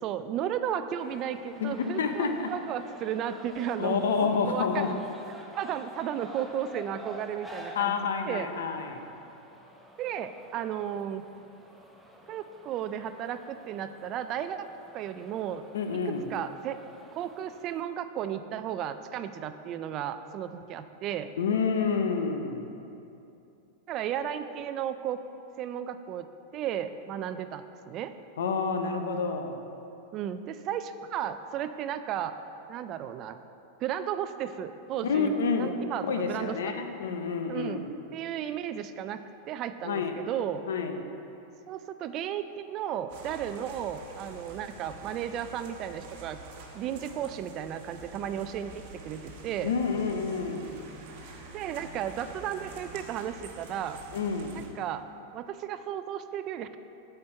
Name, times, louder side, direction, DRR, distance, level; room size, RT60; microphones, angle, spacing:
voice 1, 0.0-4.0 4.5-4.9 5.6-7.9 8.3-8.5 10.0-11.2 12.3-14.7 14.9-15.7 15.9-16.8 17.1-21.3 23.9-25.2 25.6-26.3 26.5-28.1 30.1-32.3 32.7-33.4 33.8-36.7 37.5-37.8 38.1-39.2 39.5-40.6 41.7-46.4 46.7-49.7 51.5-54.0 54.5-55.0 55.3-56.8, right 10 dB, 40° right, 10 dB, 0.3 m, -34 dB
sound 1, 1.0-17.8, right 1 dB, 5° right, 0.6 m, -49 dB
voice 2, 1.6-2.5 3.8-4.9 7.8-9.0 15.7-16.3 21.4-22.7 28.4-29.6 35.0-35.7 36.0-37.9 39.8-40.1 40.7-41.0 49.6-50.7 54.1-54.6, left 5 dB, 90° left, 5 dB, 0.6 m, -29 dB
sound 2, 43.1-54.7, right 3 dB, 60° right, 1.0 m, -47 dB
7.3 x 4.5 x 4.4 m, 2.7 s
supercardioid pair, 130°, 0 cm